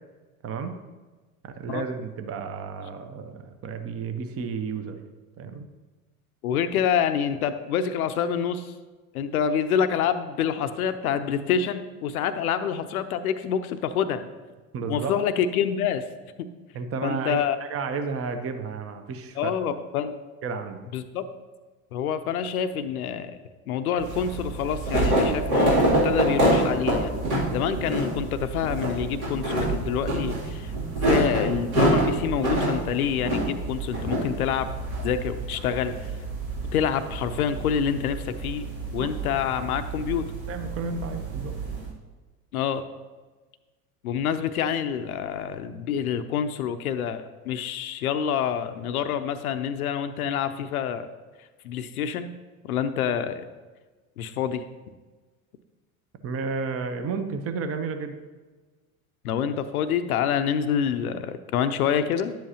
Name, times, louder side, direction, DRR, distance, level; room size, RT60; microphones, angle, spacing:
voice 1, 0.4-0.8 1.4-5.0 5.4-5.7 14.7-15.1 16.7-19.5 20.4-20.8 39.0-39.1 40.5-41.6 56.2-58.1, right 5 dB, 35° right, 8 dB, 0.9 m, -32 dB
voice 2, 6.4-8.7 9.1-14.2 14.9-16.0 16.4-16.5 17.0-17.6 19.4-20.1 20.9-21.3 21.9-23.4 23.7-25.8 26.0-27.1 27.5-30.7 31.1-34.7 35.0-35.9 36.7-38.7 38.9-40.3 42.5-42.8 44.0-51.1 51.6-52.3 52.6-53.4 54.2-54.6 59.2-62.3, left 8 dB, 85° left, 10 dB, 0.6 m, -27 dB
sound 1, 24.0-41.8, right 1 dB, 75° right, 2.9 m, -27 dB
10.0 x 7.6 x 2.9 m, 1.3 s
hypercardioid pair, 80°, 43 cm